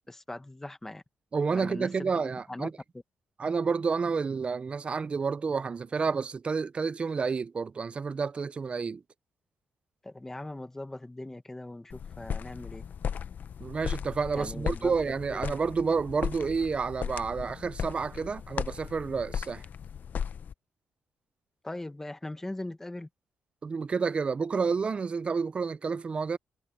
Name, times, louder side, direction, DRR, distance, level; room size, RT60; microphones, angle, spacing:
voice 1, 0.1-1.0 1.5-2.7 10.0-12.9 14.4-14.9 15.4-15.6 21.6-23.1, left 2 dB, 10° left, 1.0 m, -40 dB
voice 2, 1.3-2.7 3.4-9.0 13.6-19.6 23.6-26.4, right 5 dB, 30° right, 0.4 m, -30 dB
sound 1, 11.9-20.5, left 7 dB, 50° left, 0.6 m, -36 dB
wide cardioid pair, 155°, 4 cm